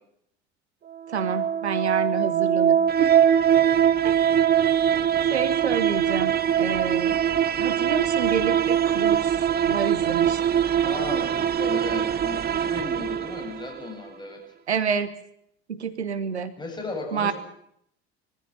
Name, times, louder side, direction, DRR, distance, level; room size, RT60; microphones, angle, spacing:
sound 1, 0.9-13.9, right 9 dB, 30° right, 0.9 m, -22 dB
voice 1, 1.1-3.1 4.0-4.3 5.3-7.2 7.6-9.3 9.7-10.4 14.7-15.1 15.7-16.5 17.1-17.3, right 6 dB, 85° right, 12 dB, 1.2 m, -28 dB
voice 2, 10.5-14.4 16.6-17.3, left 3 dB, 15° left, 2 dB, 7.6 m, -35 dB
21.5 x 14.5 x 8.7 m, 0.73 s
figure-of-eight pair, 65°, 32 cm